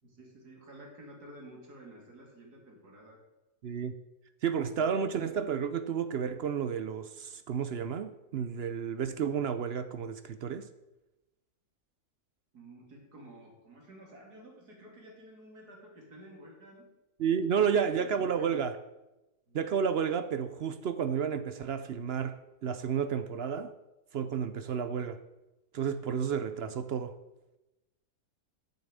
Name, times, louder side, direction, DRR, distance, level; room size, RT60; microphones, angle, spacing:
voice 1, 0.0-3.2 12.5-16.9 17.6-18.5 19.5-19.6, right 1 dB, 85° right, 0 dB, 3.2 m, -52 dB
voice 2, 3.6-3.9 4.4-10.7 17.2-18.8 19.5-23.7 24.1-25.2 25.7-27.1, right 7 dB, 65° right, 11 dB, 0.6 m, -31 dB
8.6 x 6.8 x 8.2 m, 1.0 s
omnidirectional pair, 1.6 m